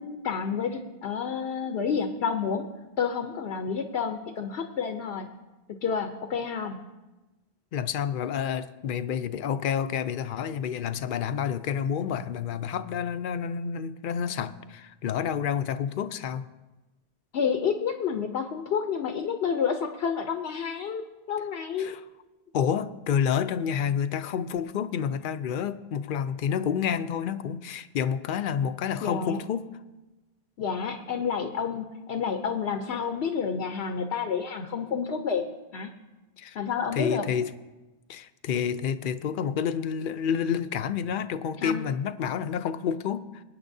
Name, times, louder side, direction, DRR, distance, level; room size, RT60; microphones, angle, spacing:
voice 1, 0.0-5.3 5.8-6.8 17.3-22.0 29.0-29.4 30.6-35.5 35.7-35.9 36.5-37.3 41.6-41.8, left 6 dB, 85° left, 1.0 m, -29 dB
voice 2, 7.7-16.5 21.8-22.0 22.5-29.7 36.4-36.6 36.9-37.5 38.1-43.4, left 8 dB, 60° left, 0.7 m, -29 dB
23.0 x 9.3 x 2.7 m
omnidirectional pair, 1.1 m